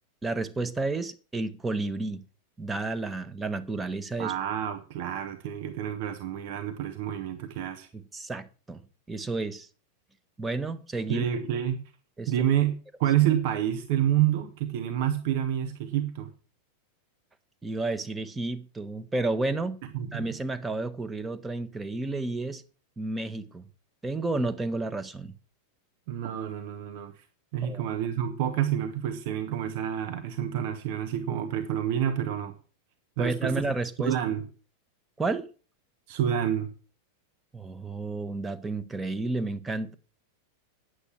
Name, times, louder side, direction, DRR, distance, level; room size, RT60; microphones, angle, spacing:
voice 1, 0.2-2.2 2.6-4.3 7.9-8.8 9.1-9.7 10.4-11.2 12.2-12.3 17.6-19.8 20.1-22.6 23.0-23.7 24.0-25.3 27.6-27.9 33.2-34.1 35.2-35.5 37.5-39.9, right 3 dB, 10° right, 1.2 m, -31 dB
voice 2, 4.2-7.9 11.1-11.8 12.3-16.3 19.9-20.3 26.1-27.2 27.5-32.5 33.2-33.5 34.0-34.4 36.1-36.7, right 10 dB, 50° right, 1.4 m, -28 dB
9.9 x 8.3 x 7.3 m
figure-of-eight pair, 90°, 0 cm